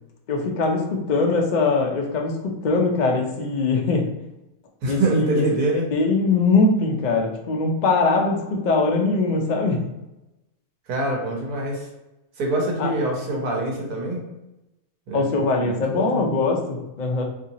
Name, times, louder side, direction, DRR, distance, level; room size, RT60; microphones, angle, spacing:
voice 1, 0.3-4.1 4.9-5.6 5.9-9.8 12.8-12.9 15.1-17.2, left 3 dB, 55° left, 1 dB, 0.5 m, -22 dB
voice 2, 4.8-5.9 10.9-11.9 12.4-14.2 15.1-15.3 15.6-16.3, right 2 dB, 85° right, 0 dB, 1.5 m, -24 dB
3.2 x 2.7 x 4.0 m, 0.95 s
omnidirectional pair, 1.6 m